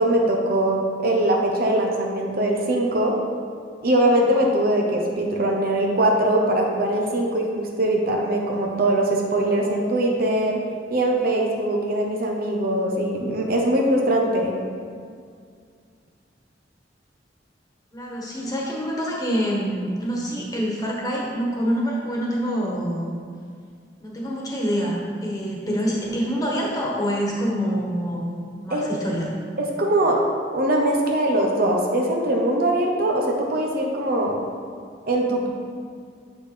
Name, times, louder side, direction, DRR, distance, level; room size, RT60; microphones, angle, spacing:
voice 1, 0.0-3.1 3.8-10.6 10.9-14.5 28.7-28.9 29.6-30.2 30.5-34.4 35.0-35.5, right 1 dB, 55° right, 0 dB, 1.0 m, -21 dB
voice 2, 17.9-23.1 24.0-28.3 28.6-29.3, equal, 20° left, -4 dB, 1.4 m, -26 dB
8.1 x 6.3 x 3.4 m, 2.2 s
head